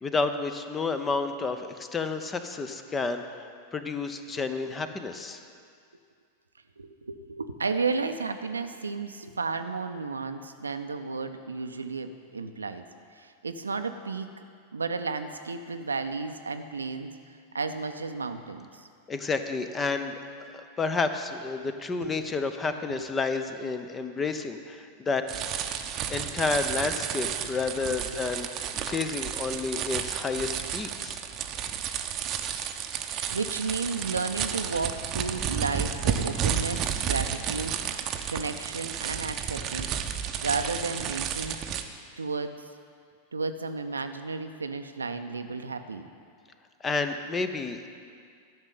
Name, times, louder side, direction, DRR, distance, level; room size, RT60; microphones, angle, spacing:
voice 1, 0.0-3.4 3.7-5.4 19.1-20.2 20.5-25.2 26.1-31.2 46.8-47.9, left 4 dB, 20° left, 9 dB, 0.8 m, -30 dB
voice 2, 6.8-12.8 13.2-14.3 14.7-17.1 17.5-18.9 22.0-22.1 28.1-28.2 33.3-39.9 40.4-41.6 42.2-42.6 43.3-46.1, right 4 dB, 75° right, 8 dB, 0.6 m, -33 dB
sound 1, 25.3-41.8, right 8 dB, 35° right, 0.8 m, -32 dB
12.0 x 6.4 x 9.3 m, 2.2 s
figure-of-eight pair, 90°, 0 cm